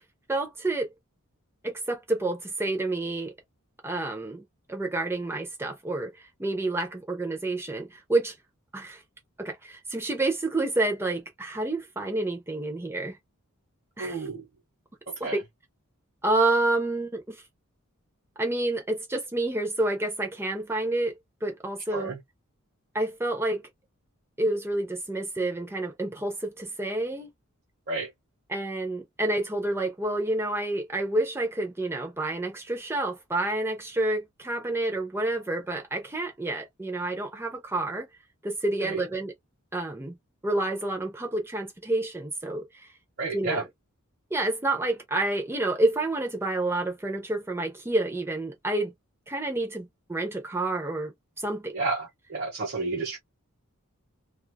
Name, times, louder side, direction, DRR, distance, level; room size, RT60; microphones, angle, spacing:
voice 1, 0.3-0.9 1.6-3.3 3.8-4.4 4.7-8.3 8.7-9.0 9.4-13.2 14.0-14.3 15.2-15.4 16.2-17.4 18.4-21.1 21.4-22.1 22.9-23.6 24.4-27.3 28.5-38.1 38.4-39.3 39.7-40.1 40.4-42.7 43.3-43.7 44.3-48.9 49.3-51.8, right 2 dB, 10° right, 0.6 m, -29 dB
voice 2, 14.0-14.4 15.2-15.4 21.9-22.2 27.9-28.1 38.8-39.0 43.2-43.6 51.7-53.2, right 3 dB, 50° right, 1.0 m, -31 dB
3.1 x 2.4 x 2.2 m
head